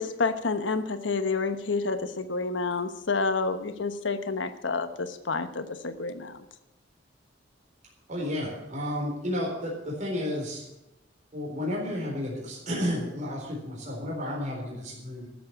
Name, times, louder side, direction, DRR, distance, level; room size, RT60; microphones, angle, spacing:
voice 1, 0.0-6.4, left 4 dB, 80° left, 10 dB, 1.1 m, -29 dB
voice 2, 8.1-10.6 11.3-15.3, left 1 dB, 40° right, -2 dB, 4.0 m, -32 dB
13.0 x 7.6 x 8.6 m, 0.89 s
head